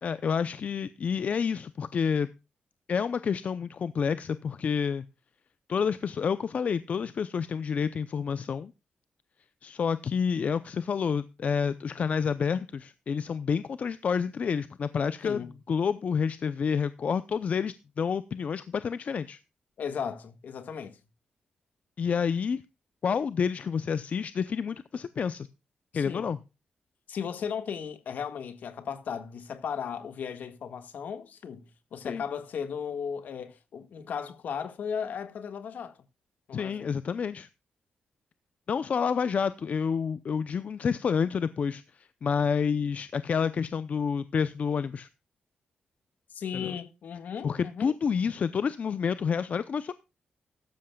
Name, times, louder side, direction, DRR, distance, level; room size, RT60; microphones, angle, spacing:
voice 1, 0.0-2.3 2.9-5.0 5.7-8.7 9.6-19.4 22.0-22.6 23.0-25.5 25.9-26.4 32.0-32.2 36.5-37.5 38.7-45.1 46.5-46.7 47.4-49.9, left 6 dB, 50° left, 0.6 m, -29 dB
voice 2, 19.8-21.0 25.9-26.3 27.1-36.0 36.5-36.9 46.3-47.9, left 7 dB, 70° left, 1.6 m, -36 dB
14.5 x 13.0 x 2.3 m
cardioid pair, 105°, 3 cm